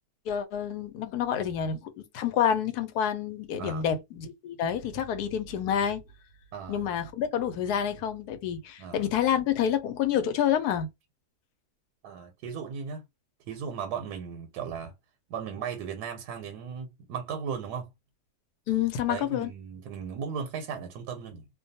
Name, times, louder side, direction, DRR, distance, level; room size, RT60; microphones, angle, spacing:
voice 1, 0.3-6.0 6.7-10.9 18.7-19.5, left 9 dB, 85° left, 1.1 m, -28 dB
voice 2, 3.6-3.9 6.5-6.8 8.8-9.0 12.0-13.0 13.5-14.9 15.3-17.9 19.1-21.5, right 6 dB, 90° right, 1.2 m, -36 dB
2.6 x 2.2 x 2.7 m
omnidirectional pair, 1.6 m